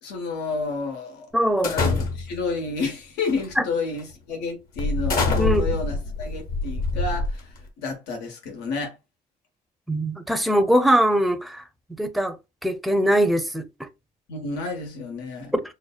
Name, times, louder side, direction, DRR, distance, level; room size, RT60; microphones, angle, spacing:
voice 1, 0.0-1.3 1.7-8.9 14.3-15.5, left 4 dB, 90° left, 1.3 m, -30 dB
voice 2, 1.3-1.8 3.6-3.7 5.3-5.8 9.9-11.6 12.0-12.4 12.6-13.9 15.5-15.6, equal, ahead, 0.5 m, -22 dB
sound 1, 1.6-2.5 3.3-3.5 4.0-4.1 4.8-7.7, left 3 dB, 60° left, 1.2 m, -25 dB
6.3 x 2.2 x 2.3 m
cardioid pair, 110°, 17 cm